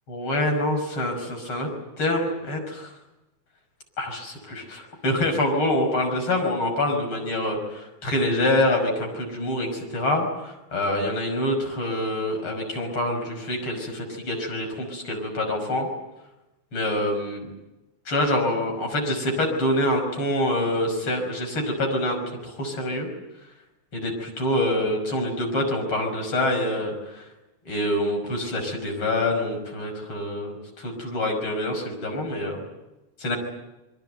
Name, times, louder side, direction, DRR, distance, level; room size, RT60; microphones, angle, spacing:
voice 1, 0.1-1.7 2.0-2.9 4.0-15.9 16.7-17.5 18.1-22.2 22.4-23.1 23.9-27.2 27.6-32.6 33.2-33.4, left 1 dB, 45° left, 2 dB, 6.5 m, -26 dB
26.5 x 23.0 x 8.0 m, 1.0 s
omnidirectional pair, 3.3 m